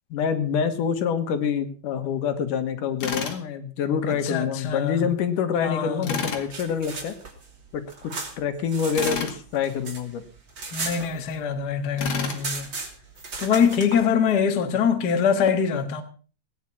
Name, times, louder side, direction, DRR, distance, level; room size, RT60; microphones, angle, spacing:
voice 1, 0.1-7.2 7.7-10.2, left 7 dB, 75° left, 2.9 m, -26 dB
Tools, 3.0-3.4 6.0-6.5 9.0-9.4 12.0-12.4, left 6 dB, 60° left, 3.3 m, -29 dB
voice 2, 4.1-5.1 5.6-6.1 10.7-12.7 13.4-16.0, left 7 dB, 40° left, 1.5 m, -23 dB
sound 1, 6.4-9.2 9.5-11.6 11.9-12.0 12.2-14.0, right 3 dB, 35° right, 3.3 m, -35 dB
18.0 x 9.9 x 5.8 m
omnidirectional pair, 3.7 m